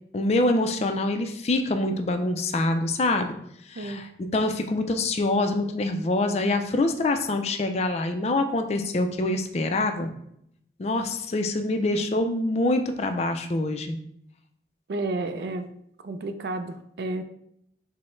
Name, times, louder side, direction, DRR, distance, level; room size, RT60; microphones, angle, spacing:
voice 1, 0.1-3.4 3.7-10.1 10.8-14.0, left 2 dB, 35° left, 6 dB, 0.4 m, -25 dB
voice 2, 3.8-4.1 14.9-15.7 16.0-17.2, right 2 dB, 65° right, 9 dB, 0.4 m, -31 dB
5.4 x 2.1 x 3.1 m, 0.73 s
head